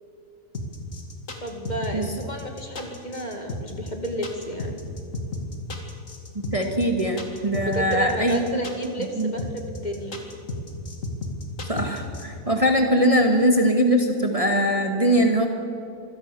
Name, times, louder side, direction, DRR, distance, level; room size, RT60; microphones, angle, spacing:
sound 1, 0.5-12.2, left 2 dB, 65° left, 2.7 m, -33 dB
voice 1, 1.4-4.8 7.6-10.2, right 1 dB, 30° left, 3 dB, 2.3 m, -31 dB
voice 2, 6.5-8.4 9.0-9.3 11.7-15.5, equal, 25° right, 3 dB, 1.8 m, -21 dB
25.5 x 16.5 x 7.0 m, 2.5 s
omnidirectional pair, 1.5 m